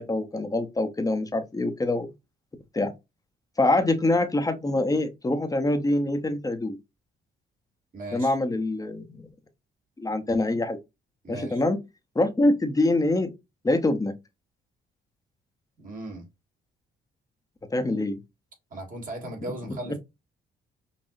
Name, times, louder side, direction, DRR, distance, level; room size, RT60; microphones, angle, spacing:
voice 1, 0.0-2.1 2.7-2.9 3.6-6.8 8.1-9.2 10.0-10.8 11.3-11.8 12.1-13.3 13.6-14.2 17.7-18.2 19.7-20.0, left 2 dB, 15° left, 0.7 m, -25 dB
voice 2, 7.9-8.3 11.2-11.6 15.8-16.3 18.7-20.0, right 1 dB, 45° right, 1.8 m, -37 dB
5.6 x 2.0 x 2.5 m
cardioid pair, 90°, 20 cm